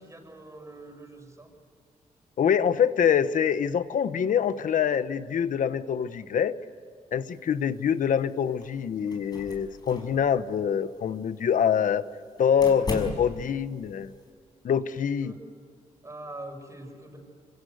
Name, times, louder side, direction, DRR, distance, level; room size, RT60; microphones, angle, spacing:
voice 1, 0.0-1.5 6.2-6.3 15.2-15.4 16.0-17.2, right 2 dB, 25° right, 4 dB, 6.1 m, -43 dB
voice 2, 2.4-6.5 7.1-12.0 12.4-14.1 14.6-15.3, left 8 dB, 85° left, 12 dB, 1.1 m, -25 dB
sound 1, 7.3-14.3, left 1 dB, 30° left, 5.6 m, -40 dB
26.5 x 26.5 x 8.0 m, 2.1 s
wide cardioid pair, 115°, 13 cm